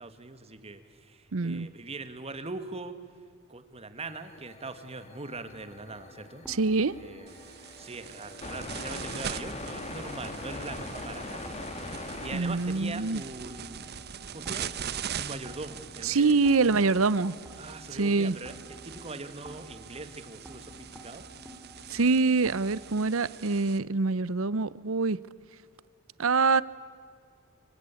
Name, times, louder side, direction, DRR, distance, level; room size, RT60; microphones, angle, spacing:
voice 1, 0.0-3.0 3.5-6.4 6.9-7.4 7.8-11.6 12.2-13.9 14.3-14.7 15.2-16.8 17.6-21.2, right 3 dB, 30° right, 10 dB, 1.8 m, -41 dB
voice 2, 1.3-1.7 6.5-6.9 12.3-13.2 16.0-17.3 17.9-18.4 21.9-25.2 26.2-26.6, right 4 dB, 75° right, 19 dB, 0.7 m, -25 dB
sound 1, 4.0-12.9, left 2 dB, 35° left, 2.5 m, -42 dB
sound 2, 5.5-22.9, equal, 5° right, 3.1 m, -51 dB
sound 3, 7.3-23.8, right 8 dB, 50° right, 0.9 m, -42 dB
25.5 x 25.0 x 8.4 m, 2.3 s
head